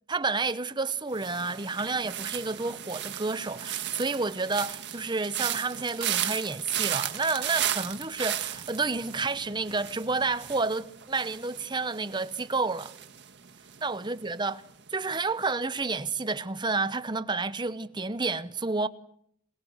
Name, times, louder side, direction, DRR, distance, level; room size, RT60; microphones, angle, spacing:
voice 1, 0.1-12.9 13.8-14.6 14.9-18.9, right 3 dB, 20° right, 0.9 m, -30 dB
sound 1, 1.1-14.2 14.4-14.9, right 11 dB, 55° right, 1.7 m, -35 dB
26.0 x 20.5 x 8.1 m
head